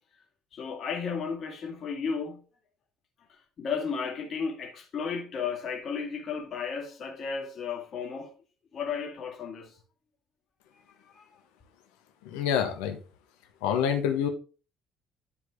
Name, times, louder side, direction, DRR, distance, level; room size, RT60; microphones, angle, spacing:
voice 1, 0.5-2.4 3.3-8.3 8.7-9.8 11.1-11.3, left 5 dB, 50° left, 2.0 m, -34 dB
voice 2, 12.2-13.0 13.6-14.3, left 8 dB, 70° left, 1.4 m, -27 dB
10.5 x 4.8 x 3.6 m
figure-of-eight pair, 55°, 0 cm